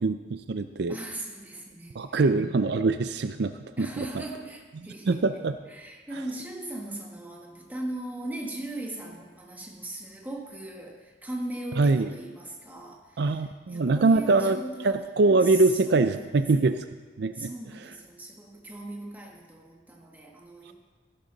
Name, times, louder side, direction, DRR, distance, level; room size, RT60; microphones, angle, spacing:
voice 1, 0.0-1.0 1.9-4.1 5.1-5.6 11.8-12.1 13.2-14.6 14.8-16.8 17.2-17.5, right 3 dB, 65° right, 10 dB, 0.5 m, -23 dB
voice 2, 0.9-2.2 3.8-5.2 5.7-15.0 15.4-16.8 17.3-20.7, right 1 dB, 10° right, 0 dB, 1.6 m, -39 dB
16.0 x 11.0 x 4.0 m, 1.4 s
head